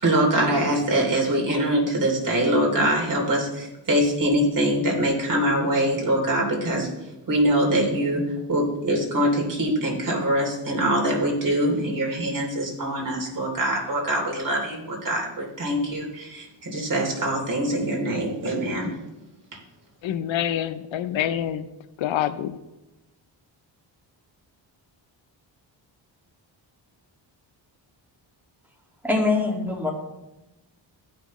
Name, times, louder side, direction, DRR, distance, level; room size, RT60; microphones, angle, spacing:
voice 1, 0.0-18.9, right 1 dB, 45° right, 3.0 m, -24 dB
voice 2, 20.0-21.7 22.0-22.6, left 10 dB, 80° left, 0.6 m, -26 dB
voice 3, 29.0-29.9, left 3 dB, 5° right, 2.0 m, -23 dB
15.0 x 5.9 x 3.1 m
cardioid pair, 90°, 46 cm